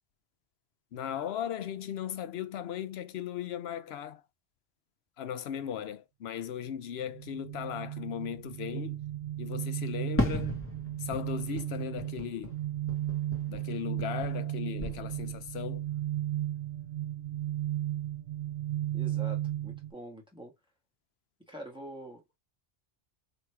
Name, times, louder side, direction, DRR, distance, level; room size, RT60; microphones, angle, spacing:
voice 1, 0.9-4.2 5.2-9.0 9.4-10.6 11.0-12.6 13.5-15.9, left 9 dB, 80° left, 0.8 m, -37 dB
sound 1, 7.1-19.9, right 13 dB, 85° right, 1.0 m, -35 dB
Fireworks, 10.2-14.5 14.8-15.6, left 1 dB, 15° left, 1.1 m, -36 dB
voice 2, 18.9-20.5 21.5-22.4, right 1 dB, 5° right, 1.4 m, -45 dB
3.1 x 3.0 x 4.5 m
omnidirectional pair, 1.1 m